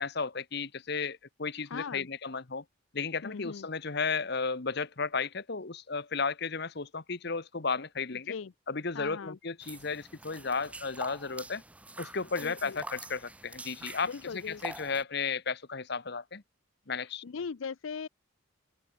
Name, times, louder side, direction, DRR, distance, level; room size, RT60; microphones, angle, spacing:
voice 1, 0.0-2.6 2.9-8.3 8.7-11.6 12.0-16.4 16.9-17.2, left 5 dB, 50° left, 1.1 m, -34 dB
voice 2, 1.7-2.1 3.2-3.7 8.2-8.5 8.9-9.4 12.4-12.8 14.0-14.6 17.0-18.1, left 5 dB, 70° left, 0.5 m, -39 dB
Water drops in crypt - Arles, 9.6-15.0, right 2 dB, 5° right, 0.5 m, -46 dB
open air
head